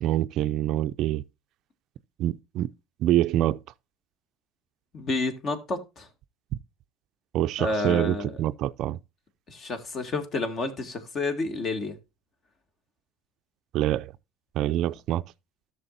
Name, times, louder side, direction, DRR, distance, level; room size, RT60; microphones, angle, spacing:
voice 1, 0.0-1.2 2.2-2.7 3.0-3.6 7.3-9.0 13.7-14.1 14.6-15.2, right 13 dB, 60° right, 0.4 m, -25 dB
voice 2, 4.9-6.1 7.6-8.4 9.5-12.0, left 3 dB, 45° left, 2.1 m, -30 dB
13.5 x 6.4 x 2.6 m
hypercardioid pair, 80°, 0 cm